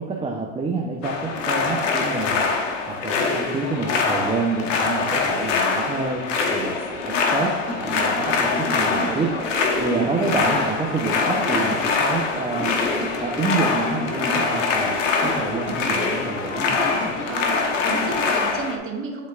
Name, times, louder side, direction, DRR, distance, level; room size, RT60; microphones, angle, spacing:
voice 1, 0.0-2.5 2.8-9.3 9.8-12.8 13.2-16.8, right 4 dB, 15° right, -1 dB, 0.8 m, -28 dB
sound 1, 1.0-18.8, left 4 dB, 70° left, 1.1 m, -24 dB
voice 2, 7.0-7.4 8.9-9.6 17.3-19.3, right 4 dB, 35° right, 1 dB, 1.5 m, -33 dB
sound 2, 7.7-18.3, left 1 dB, 30° left, 1.7 m, -32 dB
10.5 x 4.1 x 2.4 m, 1.3 s
hypercardioid pair, 90°, 39 cm